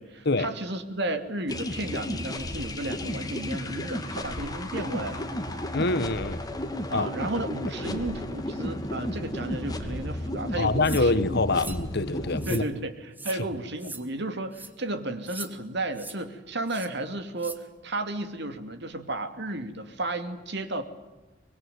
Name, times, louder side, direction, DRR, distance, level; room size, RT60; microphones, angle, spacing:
voice 1, 0.0-5.3 6.9-11.3 12.5-20.8, right 2 dB, 65° right, 7 dB, 2.7 m, -33 dB
sound 1, 1.5-12.6, left 1 dB, 20° left, 2.6 m, -33 dB
voice 2, 5.7-6.4 6.9-7.1 7.9-8.0 10.5-12.6, left 3 dB, 60° left, 13 dB, 1.2 m, -25 dB
sound 2, 10.8-11.1 11.5-11.8 12.4-12.6 13.1-13.4 13.8-14.0 14.5-14.7 15.3-15.5 15.9-16.2 16.7-16.9 17.4-17.6, right 3 dB, 10° right, 1.9 m, -40 dB
24.0 x 22.5 x 9.4 m, 1.1 s
head